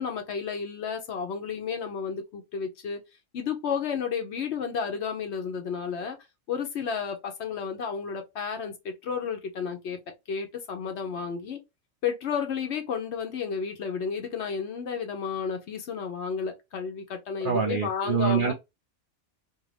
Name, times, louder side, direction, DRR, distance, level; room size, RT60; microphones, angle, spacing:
voice 1, 0.0-3.0 3.3-6.2 6.5-10.0 10.3-11.6 12.0-18.5, left 6 dB, 65° left, 0.8 m, -32 dB
voice 2, 17.4-18.5, right 6 dB, 65° right, 0.5 m, -25 dB
2.7 x 2.5 x 3.2 m
omnidirectional pair, 1.4 m